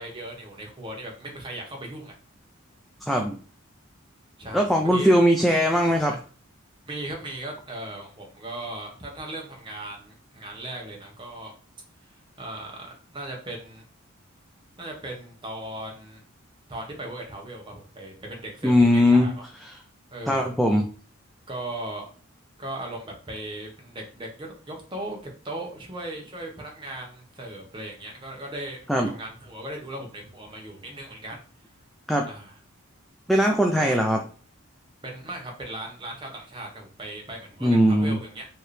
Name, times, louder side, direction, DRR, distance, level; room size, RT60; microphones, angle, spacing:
voice 1, 0.0-2.2 4.4-5.1 6.0-6.2 6.9-11.5 12.0-13.8 14.8-16.2 16.7-19.4 20.1-20.5 21.5-22.1 22.6-31.4 32.3-32.5 33.7-34.0 35.0-38.5, right 1 dB, 20° right, 0 dB, 1.1 m, -38 dB
voice 2, 3.0-3.4 4.5-6.1 18.6-19.3 20.3-20.9 28.9-29.1 32.1-32.3 33.3-34.2 37.6-38.2, equal, ahead, 2 dB, 0.4 m, -20 dB
4.4 x 3.0 x 3.3 m, 0.41 s
head